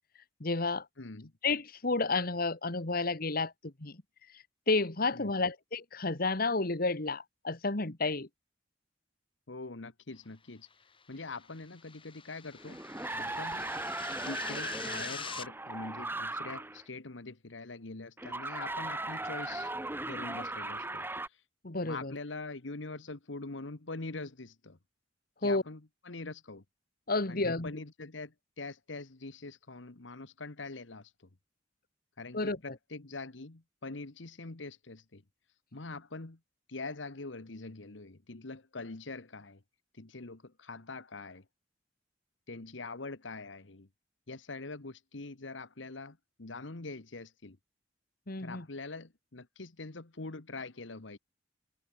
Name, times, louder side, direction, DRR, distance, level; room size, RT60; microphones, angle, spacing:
voice 1, 0.4-0.9 1.4-4.0 4.3-8.3 21.6-22.1 25.4-25.6 27.1-27.7 32.3-32.6 48.3-48.7, left 3 dB, 50° left, 1.9 m, -31 dB
voice 2, 1.0-1.3 5.1-5.4 9.5-10.7 11.1-12.8 13.1-13.7 14.2-19.7 20.0-21.4 21.8-24.8 25.4-26.6 27.3-31.1 32.2-35.2 35.7-36.4 36.7-39.6 39.9-41.4 42.5-43.9 44.3-47.6 48.4-51.2, left 3 dB, 90° left, 1.5 m, -44 dB
sound 1, 11.0-15.5, left 6 dB, 30° left, 6.0 m, -45 dB
sound 2, 12.6-16.8 18.2-21.3, right 2 dB, 10° right, 2.5 m, -38 dB
head